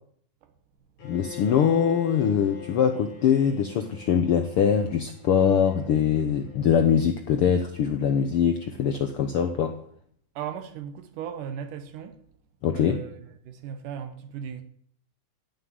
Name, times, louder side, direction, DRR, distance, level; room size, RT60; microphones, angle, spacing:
voice 1, 1.0-9.7 12.6-13.0, left 8 dB, 85° left, 1.2 m, -23 dB
Bowed string instrument, 1.0-7.0, left 8 dB, 65° left, 4.6 m, -43 dB
voice 2, 10.4-12.2 12.7-14.6, right 8 dB, 75° right, 2.5 m, -37 dB
15.0 x 6.7 x 9.4 m
omnidirectional pair, 3.8 m